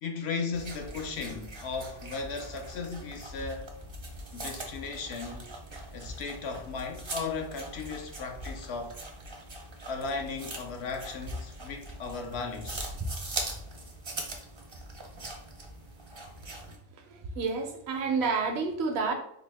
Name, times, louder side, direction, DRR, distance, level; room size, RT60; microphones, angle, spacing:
voice 1, 0.0-3.7 4.3-5.5 5.9-9.0 9.9-12.9, left 4 dB, 70° left, 0.8 m, -36 dB
sound 1, 0.5-16.8, right 1 dB, 35° right, 0.5 m, -41 dB
voice 2, 17.1-19.1, right 4 dB, 70° right, 0.8 m, -29 dB
3.9 x 2.1 x 3.3 m
omnidirectional pair, 1.2 m